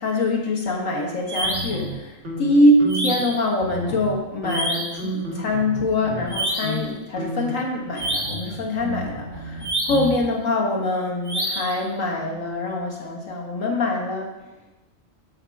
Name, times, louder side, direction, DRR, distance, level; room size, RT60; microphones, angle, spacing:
voice 1, 0.0-14.4, left 1 dB, 85° left, 0 dB, 1.8 m, -24 dB
sound 1, 1.3-1.8 2.9-3.4 4.5-5.0 6.3-6.9 7.9-8.5 9.6-10.2 11.3-11.8, right 1 dB, 20° right, 1.1 m, -27 dB
sound 2, 1.4-3.3 3.6-4.2 4.4-6.3 6.6-6.9 7.2-10.2, equal, 65° right, 1.8 m, -32 dB
7.2 x 5.8 x 4.6 m, 1.0 s
omnidirectional pair, 1.3 m